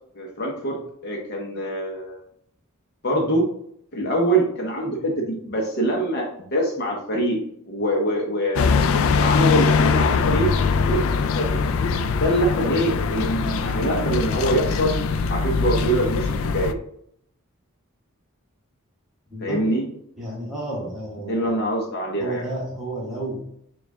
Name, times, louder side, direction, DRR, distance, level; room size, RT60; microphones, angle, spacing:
voice 1, 0.1-0.8 1.0-2.2 3.0-3.5 3.9-7.4 7.7-8.7 9.1-10.5 10.8-11.6 12.1-14.9 15.2-16.7 19.4-19.8 21.2-22.4, right 1 dB, 45° left, 0 dB, 0.7 m, -24 dB
sound 1, 8.5-16.7, left 5 dB, 65° left, 0.3 m, -22 dB
voice 2, 19.3-19.7 20.2-21.6 22.2-23.5, right 1 dB, ahead, -6 dB, 1.2 m, -31 dB
4.9 x 2.3 x 3.5 m, 0.69 s
head